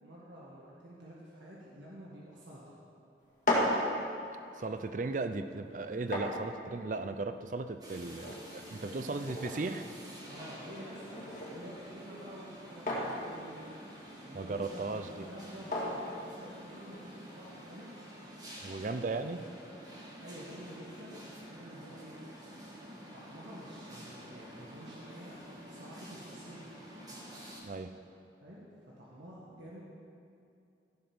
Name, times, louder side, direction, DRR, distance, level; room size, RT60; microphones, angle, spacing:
voice 1, 0.0-2.6 8.7-9.2 10.3-17.9 20.0-22.2 23.1-25.4 25.7-26.8 28.4-28.6 29.0-29.9, equal, 90° right, -6 dB, 1.7 m, -49 dB
sound 1, 3.2-17.1, left 1 dB, 45° left, 2.1 m, -38 dB
voice 2, 4.6-9.9 14.3-15.3 18.6-19.5 27.6-28.0, right 3 dB, 45° right, 9 dB, 0.5 m, -36 dB
sound 2, 7.8-27.6, equal, 20° right, 1.6 m, -49 dB
15.0 x 5.3 x 6.1 m, 2.6 s
head